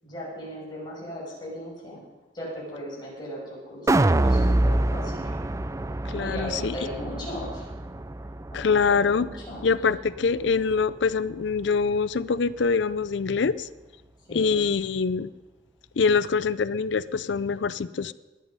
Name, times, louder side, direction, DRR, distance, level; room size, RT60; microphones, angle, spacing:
voice 1, 0.0-2.0 2.3-5.3 6.1-7.7 8.5-9.6 14.3-14.7, equal, 20° left, -4 dB, 6.3 m, -37 dB
sound 1, 3.9-10.1 10.5-10.6, right 1 dB, 15° right, 0.4 m, -26 dB
voice 2, 6.0-6.8 8.5-9.3 9.6-13.7 14.3-15.3 16.0-18.1, left 5 dB, 65° left, 17 dB, 0.5 m, -24 dB
20.5 x 11.0 x 5.4 m, 1.2 s
head